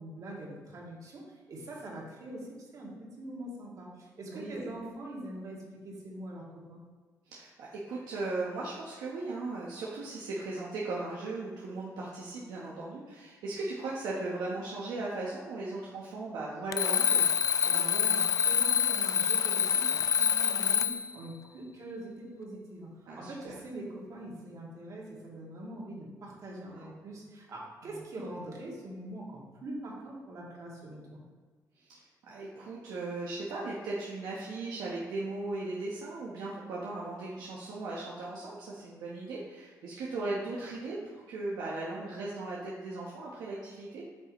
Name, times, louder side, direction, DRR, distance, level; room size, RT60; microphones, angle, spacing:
voice 1, 0.0-2.9 3.2-6.8 17.6-22.9 23.2-31.2, right 1 dB, 60° right, -3 dB, 2.3 m, -43 dB
voice 2, 4.3-4.7 7.3-17.3 23.1-23.5 26.7-26.9 27.8-28.0 31.9-44.0, right 2 dB, 85° right, -5 dB, 1.1 m, -37 dB
Alarm, 16.7-21.1, left 8 dB, 55° left, 0.3 m, -26 dB
8.7 x 5.5 x 3.1 m, 1.5 s
cardioid pair, 75°, 7 cm